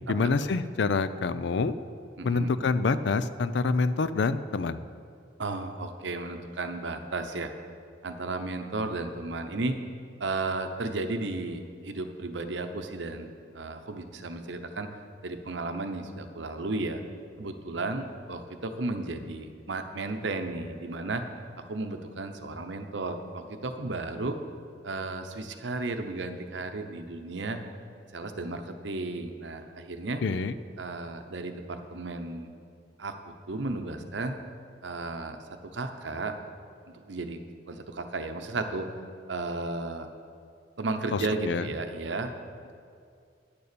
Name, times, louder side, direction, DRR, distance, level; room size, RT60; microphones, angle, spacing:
voice 1, 0.1-1.7 2.2-4.8 30.2-30.6 41.1-41.7, left 4 dB, 65° left, 14 dB, 0.4 m, -26 dB
voice 2, 2.2-2.5 5.4-7.5 8.0-9.8 10.2-14.9 15.2-17.0 17.4-21.2 21.7-24.4 24.8-27.6 28.1-30.2 30.8-32.5 33.0-34.4 34.8-35.4 35.6-36.3 36.9-37.4 37.7-38.9 39.3-40.1 40.8-42.3, right 2 dB, 75° right, 7 dB, 0.8 m, -34 dB
10.5 x 6.8 x 6.8 m, 2.3 s
head